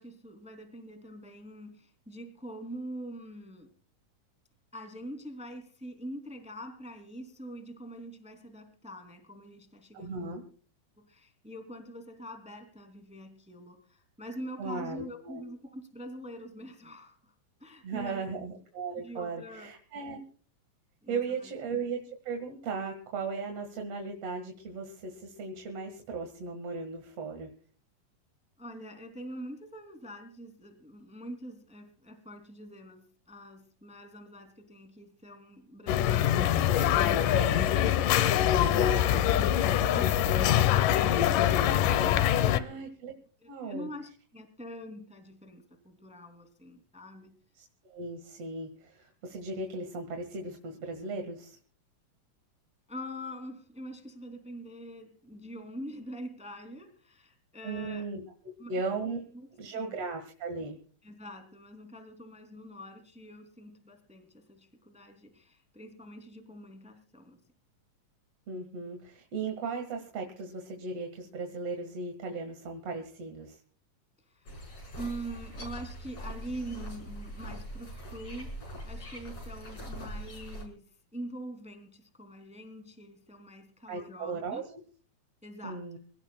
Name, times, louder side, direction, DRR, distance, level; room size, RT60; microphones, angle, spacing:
voice 1, 0.0-3.7 4.7-10.4 11.0-17.3 17.6-18.3 19.0-20.0 21.0-21.5 28.6-37.7 38.6-42.8 43.4-47.3 52.9-58.1 58.6-58.8 59.3-59.5 59.7-60.0 61.0-67.4 74.3-74.6 74.9-80.8 81.1-84.6 85.4-86.0, equal, ahead, 6 dB, 2.4 m, -44 dB
voice 2, 9.9-10.4 14.6-15.5 17.8-20.2 21.1-27.5 37.2-37.6 42.5-43.1 43.5-43.9 47.5-51.6 57.6-58.2 58.7-59.2 59.6-60.8 68.5-73.6 83.9-84.8 85.6-86.0, right 4 dB, 55° right, 3 dB, 2.8 m, -37 dB
sound 1, 35.9-42.6, left 11 dB, 85° left, 2.5 m, -24 dB
sound 2, 74.5-80.6, equal, 40° left, 6.0 m, -42 dB
26.0 x 18.0 x 2.3 m, 0.44 s
omnidirectional pair, 3.7 m